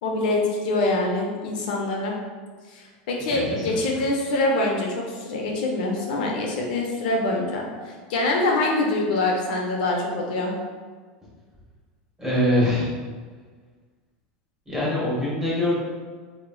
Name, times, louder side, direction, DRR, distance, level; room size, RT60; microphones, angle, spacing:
voice 1, 0.0-2.1 2.7-10.5, left 2 dB, 75° left, -1 dB, 0.6 m, -25 dB
voice 2, 3.3-3.8 12.2-13.0 14.7-15.8, left 1 dB, 10° right, -7 dB, 1.0 m, -23 dB
3.0 x 2.8 x 2.2 m, 1.5 s
supercardioid pair, 145°, 4 cm